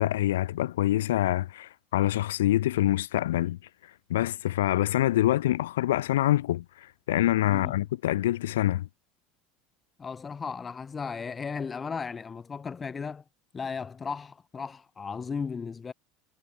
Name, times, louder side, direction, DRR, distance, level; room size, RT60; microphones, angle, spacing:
voice 1, 0.0-3.6 4.1-6.6 7.1-8.9, left 14 dB, 75° left, 0.6 m, -25 dB
voice 2, 7.5-7.8 10.0-13.2 13.5-15.9, left 5 dB, 25° left, 1.5 m, -35 dB
hypercardioid pair, 75°, 0 cm